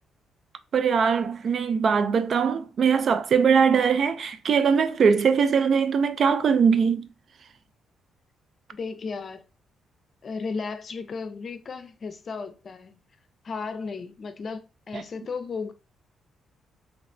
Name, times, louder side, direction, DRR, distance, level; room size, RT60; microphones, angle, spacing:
voice 1, 0.7-7.1 14.9-15.0, right 6 dB, 60° right, 0.4 m, -21 dB
voice 2, 8.7-9.4 10.2-12.9 13.4-14.6 14.9-15.7, left 4 dB, 50° left, 0.5 m, -34 dB
3.2 x 2.0 x 2.5 m
cardioid pair, 70°, 0 cm